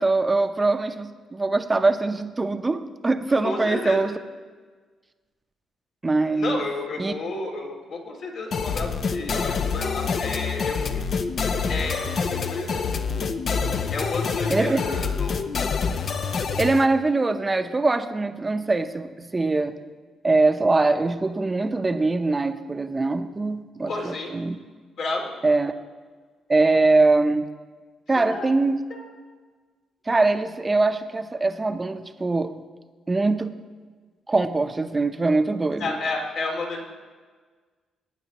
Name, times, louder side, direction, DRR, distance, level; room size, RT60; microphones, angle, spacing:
voice 1, 0.0-4.1 6.0-6.6 7.0-7.1 14.5-14.8 16.6-19.8 20.2-24.6 25.4-25.7 26.5-27.5 28.1-28.8 30.1-32.5 33.1-33.6 34.3-35.9, right 3 dB, 20° right, 8 dB, 0.7 m, -22 dB
voice 2, 3.4-4.0 6.3-11.0 11.7-13.3 13.9-15.4 23.9-24.3 25.0-25.3 28.2-28.5 28.9-29.0 35.8-36.9, left 2 dB, 70° left, 0 dB, 2.5 m, -31 dB
sound 1, 8.5-16.9, left 5 dB, 55° left, 0.7 m, -26 dB
18.5 x 9.1 x 3.0 m, 1.4 s
cardioid pair, 90°, 0 cm